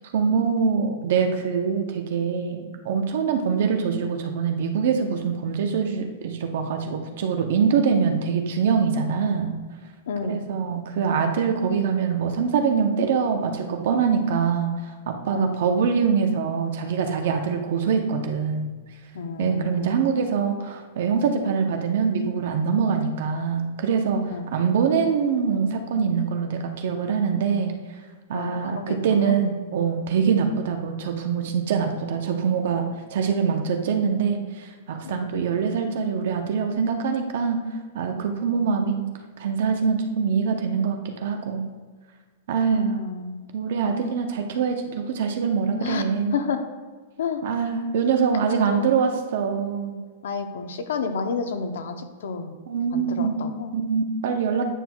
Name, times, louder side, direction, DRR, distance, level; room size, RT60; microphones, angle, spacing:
voice 1, 0.1-9.5 10.2-14.7 15.1-18.7 19.4-24.2 24.5-27.7 28.3-37.6 37.9-39.0 39.4-41.7 42.5-43.0 43.5-46.3 47.4-49.9 52.7-53.4 53.7-54.6, right 6 dB, 55° right, 4 dB, 0.7 m, -24 dB
voice 2, 10.1-10.4 15.3-15.5 19.1-19.9 24.3-24.5 28.3-29.4 35.0-35.3 38.5-38.6 42.7-43.3 45.8-46.0 46.3-46.6 47.2-47.4 48.4-48.9 50.2-52.5 52.9-53.8, left 5 dB, 75° left, 7 dB, 0.7 m, -30 dB
9.1 x 6.1 x 2.3 m, 1.4 s
supercardioid pair, 170°, 0 cm